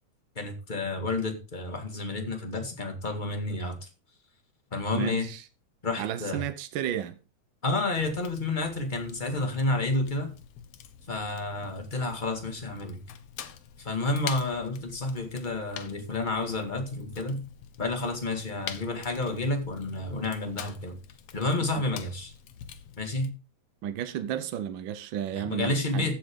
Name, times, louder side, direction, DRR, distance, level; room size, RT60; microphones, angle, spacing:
voice 1, 0.3-3.9 4.7-5.3 5.8-6.4 7.6-10.3 11.1-13.0 13.8-17.4 17.8-21.0 21.3-22.3 23.0-23.3 25.3-26.2, left 2 dB, 20° left, 1.5 m, -30 dB
voice 2, 4.9-5.4 6.0-7.2 21.8-21.9 23.8-26.1, right 10 dB, 85° right, 1.0 m, -33 dB
Fire, 8.0-23.3, left 9 dB, 65° left, 1.8 m, -46 dB
15.0 x 7.9 x 3.7 m
omnidirectional pair, 3.4 m